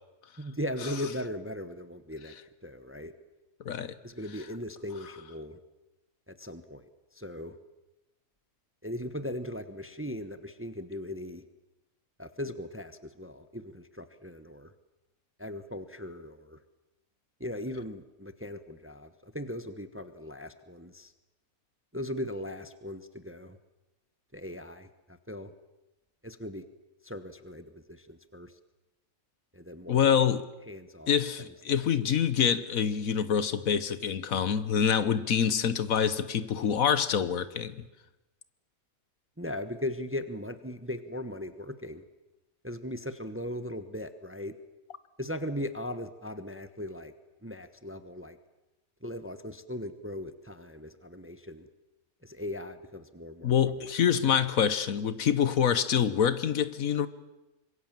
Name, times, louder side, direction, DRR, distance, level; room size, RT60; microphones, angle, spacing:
voice 1, 0.4-2.3 2.6-3.1 4.0-5.6 6.3-6.9 7.1-7.6 8.8-11.4 12.2-14.7 15.4-16.6 17.4-21.1 21.9-23.6 24.3-25.5 26.2-26.6 27.0-28.5 29.5-30.2 30.7-31.1 31.7-31.9 39.4-42.0 42.6-44.6 45.2-47.1 47.4-48.4 49.0-51.7 52.2-53.9, left 1 dB, 10° right, 1.0 m, -38 dB
voice 2, 29.9-30.4 31.1-37.8 53.4-57.1, left 8 dB, 70° left, 1.4 m, -26 dB
25.5 x 22.5 x 7.5 m
omnidirectional pair, 1.5 m